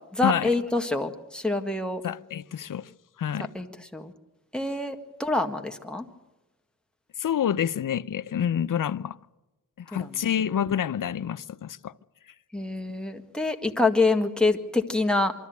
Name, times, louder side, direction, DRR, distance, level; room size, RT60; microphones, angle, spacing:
voice 1, 0.1-2.0 3.5-4.1 4.5-6.0 9.9-10.1 12.5-15.3, left 3 dB, 5° left, 1.8 m, -26 dB
voice 2, 2.0-2.9 3.2-3.5 7.2-9.2 9.8-11.9, left 9 dB, 65° left, 0.7 m, -28 dB
24.5 x 13.5 x 9.4 m
cardioid pair, 70°, 34 cm